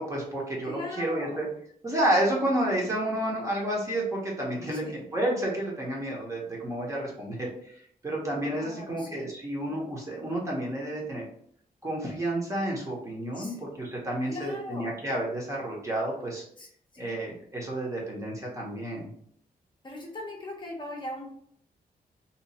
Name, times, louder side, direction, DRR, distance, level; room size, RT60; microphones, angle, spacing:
voice 1, 0.0-1.5 1.8-7.7 8.0-11.2 11.8-16.4 17.0-19.1, right 1 dB, 20° right, -3 dB, 0.9 m, -30 dB
voice 2, 0.6-1.5 4.7-5.0 8.6-9.2 13.3-13.6 14.3-15.0 16.6-16.7 16.9-17.2 19.8-21.3, left 1 dB, 30° left, -1 dB, 0.7 m, -39 dB
2.8 x 2.4 x 4.1 m, 0.65 s
wide cardioid pair, 160°, 16 cm